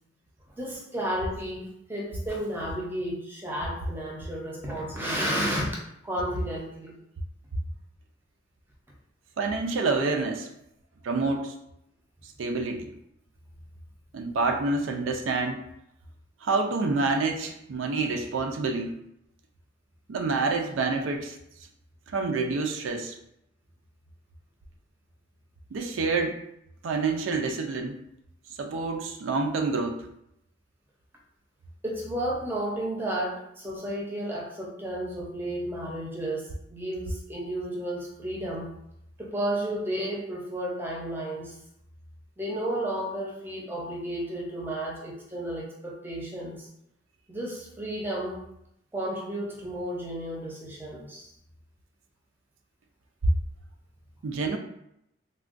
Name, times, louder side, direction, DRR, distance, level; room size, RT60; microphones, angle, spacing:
voice 1, 0.6-5.7 6.0-7.0 31.8-38.7 39.2-41.5 42.4-46.7 47.3-48.4 48.9-51.3, right 1 dB, 10° right, -3 dB, 0.5 m, -32 dB
voice 2, 9.4-10.5 11.0-11.5 12.4-12.9 14.1-15.6 16.4-19.0 20.1-21.4 22.1-23.1 25.7-26.4 26.8-28.0 28.6-30.1 54.2-54.6, right 3 dB, 85° right, 4 dB, 0.4 m, -27 dB
3.4 x 2.2 x 2.4 m, 0.78 s
head